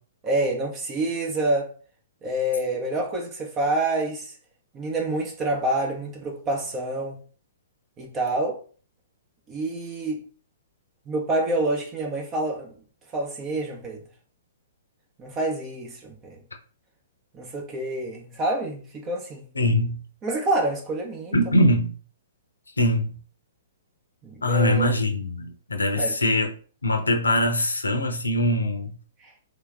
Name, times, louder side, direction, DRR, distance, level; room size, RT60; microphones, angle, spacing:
voice 1, 0.2-1.7 2.2-4.3 4.7-7.2 8.0-8.6 9.5-10.2 11.1-12.7 13.1-14.0 15.2-16.4 17.3-19.4 20.2-21.4 24.2-24.9 26.0-26.2, right 1 dB, 25° right, 1.0 m, -27 dB
voice 2, 19.6-20.0 21.3-21.9 22.8-23.1 24.4-26.5 26.8-28.9, left 1 dB, 80° left, 0.8 m, -22 dB
3.3 x 3.0 x 3.6 m
figure-of-eight pair, 115°, 0 cm